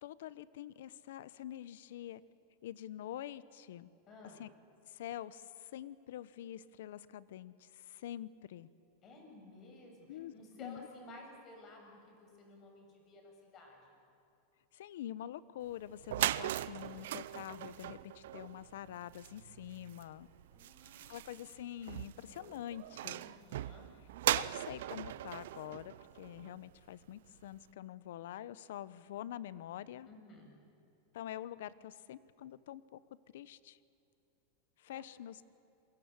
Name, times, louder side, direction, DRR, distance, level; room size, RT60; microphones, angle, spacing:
voice 1, 0.0-2.2 2.6-3.9 4.4-4.5 4.9-8.7 10.1-10.3 10.6-10.9 14.7-20.3 21.1-23.2 24.3-30.1 31.1-33.0 33.3-33.8 34.8-35.5, left 12 dB, 75° left, 17 dB, 0.9 m, -46 dB
voice 2, 4.1-4.4 9.0-14.0 20.5-21.2 22.2-22.6 23.2-23.9 30.1-30.5 34.9-35.0, left 2 dB, 30° left, 2 dB, 7.4 m, -55 dB
sound 1, 15.7-15.8 16.0-26.8, right 13 dB, 75° right, 0.6 m, -39 dB
28.0 x 22.5 x 8.2 m, 2.7 s
supercardioid pair, 140°, 0 cm